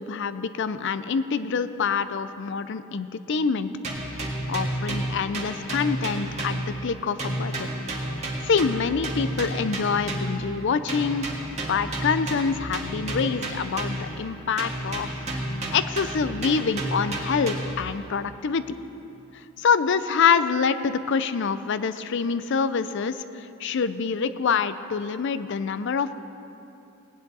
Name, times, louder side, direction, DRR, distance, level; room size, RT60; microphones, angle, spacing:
voice 1, 0.0-3.7 4.1-4.2 4.5-7.7 8.4-11.3 11.7-18.6 19.6-26.1, left 5 dB, 60° left, 13 dB, 0.5 m, -26 dB
sound 1, 3.8-6.9 7.2-10.5 10.9-14.2 14.6-17.9, right 1 dB, 35° right, 1.7 m, -31 dB
17.5 x 10.0 x 4.1 m, 2.9 s
head